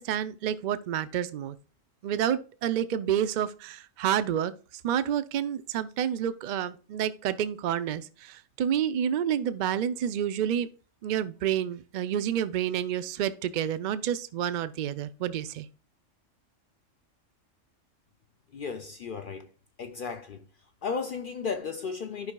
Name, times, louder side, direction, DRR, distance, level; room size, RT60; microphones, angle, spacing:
voice 1, 0.0-1.6 2.0-4.5 4.8-10.7 11.0-15.7, right 9 dB, 60° right, 0.5 m, -29 dB
voice 2, 18.5-19.5 19.8-20.4 20.8-22.3, left 5 dB, 55° left, 0.6 m, -34 dB
13.0 x 5.4 x 2.2 m
omnidirectional pair, 1.3 m